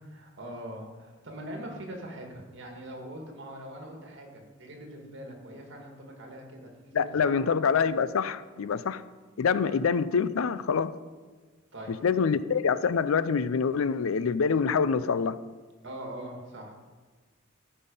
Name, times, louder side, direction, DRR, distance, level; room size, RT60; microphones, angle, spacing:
voice 1, 0.0-6.7 6.9-7.3 9.7-9.8 11.7-11.9 15.8-16.7, right 1 dB, 60° right, 2 dB, 2.1 m, -42 dB
voice 2, 6.9-9.0 9.4-10.9 11.9-15.4, left 6 dB, 80° left, 16 dB, 0.4 m, -26 dB
14.0 x 5.6 x 5.4 m, 1.4 s
head